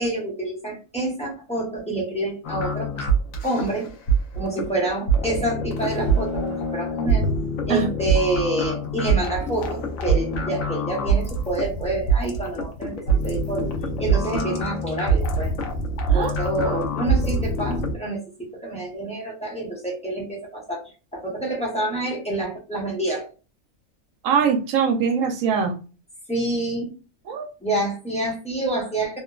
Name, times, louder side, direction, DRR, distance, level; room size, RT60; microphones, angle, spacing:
voice 1, 0.0-3.0 3.4-3.9 4.3-7.3 7.7-13.7 14.0-15.5 16.1-23.3 26.3-26.9 27.6-29.2, right 2 dB, 5° left, -4 dB, 0.6 m, -27 dB
sound 1, 2.4-17.9, right 3 dB, 90° left, 1.0 m, -24 dB
voice 2, 24.2-25.7 27.3-27.5, right 6 dB, 80° right, 6 dB, 1.0 m, -22 dB
2.8 x 2.2 x 2.3 m, 0.34 s
omnidirectional pair, 1.4 m